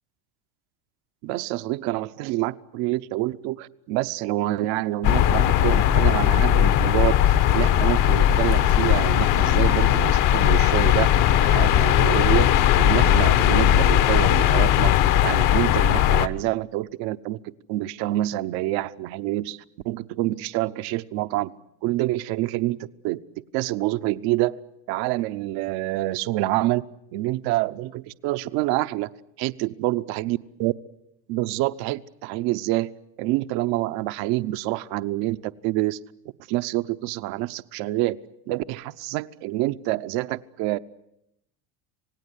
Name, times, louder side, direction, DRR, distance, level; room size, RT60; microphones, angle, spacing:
voice 1, 1.2-11.1 11.4-14.9 15.2-17.4 17.7-21.5 21.8-23.2 23.5-24.6 24.9-26.9 27.1-29.1 29.4-30.7 31.3-32.9 33.2-36.0 36.5-38.2 38.5-40.8, right 17 dB, 65° right, 12 dB, 0.9 m, -27 dB
sound 1, 5.0-16.3, left 11 dB, 50° left, 1.1 m, -18 dB
27.5 x 18.5 x 9.9 m, 0.81 s
cardioid pair, 140°, 41 cm